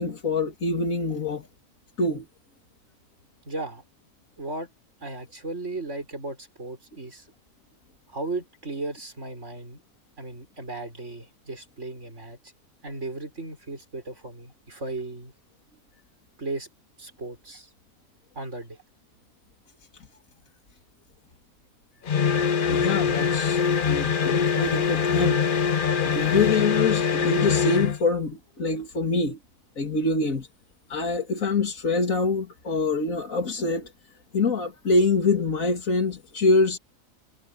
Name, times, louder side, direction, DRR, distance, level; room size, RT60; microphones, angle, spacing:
voice 1, 0.0-1.5 2.0-2.2 22.7-25.4 26.0-29.4 29.8-30.5 30.9-33.9 34.3-36.8, left 3 dB, 80° left, 2.9 m, -25 dB
voice 2, 3.5-3.8 4.4-4.7 5.0-7.3 8.1-9.8 10.2-12.5 12.8-15.3 16.4-16.7 17.0-17.7 18.3-18.8, right 2 dB, 60° right, 6.1 m, -36 dB
sound 1, 22.0-28.0, left 6 dB, 45° left, 0.9 m, -23 dB
omnidirectional pair, 1.4 m